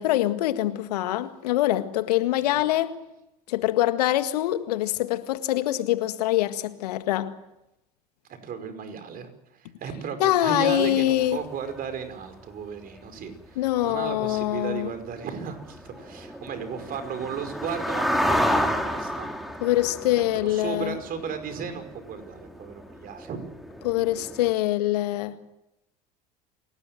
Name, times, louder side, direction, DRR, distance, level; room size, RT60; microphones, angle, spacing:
voice 1, 0.0-2.9 3.5-7.3 10.2-11.4 13.6-14.9 19.6-21.0 23.8-25.4, left 14 dB, 70° left, 1.8 m, -24 dB
voice 2, 8.4-19.3 20.2-23.4, right 7 dB, 45° right, 5.3 m, -35 dB
sound 1, 10.8-10.9 11.3-11.4 11.6-11.8 12.2-12.5 12.9-13.0 13.4-13.5 13.7-13.8 14.1-24.5, equal, ahead, 3.3 m, -31 dB
28.0 x 19.5 x 7.8 m
hypercardioid pair, 70°, 21 cm